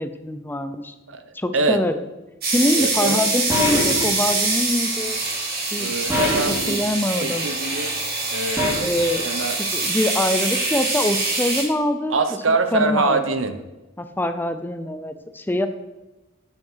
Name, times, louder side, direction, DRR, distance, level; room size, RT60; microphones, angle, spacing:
voice 1, 0.0-0.9 1.3-2.0 2.5-5.2 5.7-5.9 6.5-7.5 8.8-9.3 9.7-12.2 12.5-13.4 14.0-15.7, left 1 dB, 10° left, 9 dB, 0.6 m, -24 dB
sound 1, 2.4-11.6, right 3 dB, 50° right, 3.5 m, -24 dB
voice 2, 2.8-3.2 5.8-6.8 7.1-8.0 8.3-8.8 9.2-9.6 12.1-13.5, right 3 dB, 75° right, 9 dB, 1.0 m, -24 dB
sound 2, 3.5-4.1 6.1-6.7 8.6-9.0, left 1 dB, 10° right, 3.1 m, -23 dB
9.4 x 9.0 x 5.7 m, 1.1 s
head